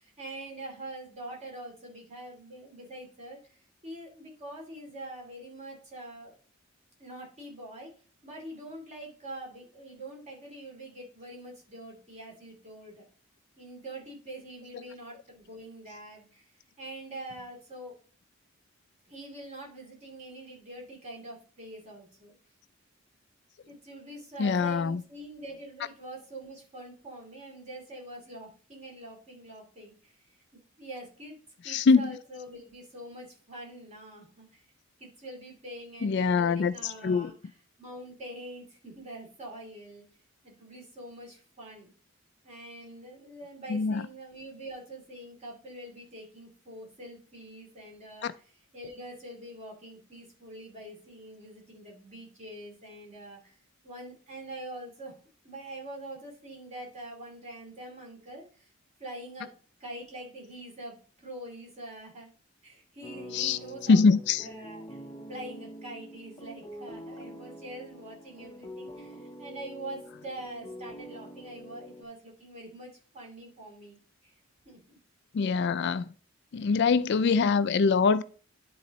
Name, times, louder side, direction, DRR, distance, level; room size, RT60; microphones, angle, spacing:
voice 1, 0.0-6.4 7.0-7.9 8.2-13.1 13.6-16.5 16.8-17.9 19.1-22.3 23.7-30.3 30.8-31.3 31.6-34.7 35.0-37.3 37.8-40.0 40.4-41.9 42.4-48.3 48.7-53.6 53.8-55.1 55.4-58.7 59.0-59.5 59.8-62.3 62.6-65.0 65.3-74.0 74.2-74.3 74.6-75.0, right 1 dB, 35° right, 2.7 m, -44 dB
voice 2, 24.4-25.0 31.7-32.1 36.0-37.3 43.7-44.0 48.2-48.3 63.3-63.6 63.9-64.5 75.3-76.1 76.5-78.2, left 4 dB, 55° left, 0.4 m, -24 dB
sound 1, 63.0-72.0, equal, 20° left, 0.8 m, -45 dB
10.0 x 3.9 x 4.1 m
head